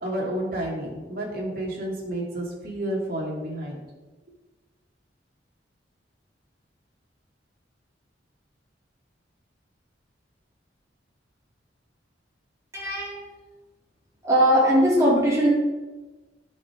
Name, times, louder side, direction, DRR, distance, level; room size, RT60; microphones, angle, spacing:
voice 1, 0.0-3.8, right 1 dB, 55° right, -3 dB, 2.6 m, -30 dB
voice 2, 12.7-13.2 14.2-15.5, equal, 15° right, -6 dB, 3.8 m, -20 dB
10.0 x 6.0 x 6.2 m, 1.2 s
head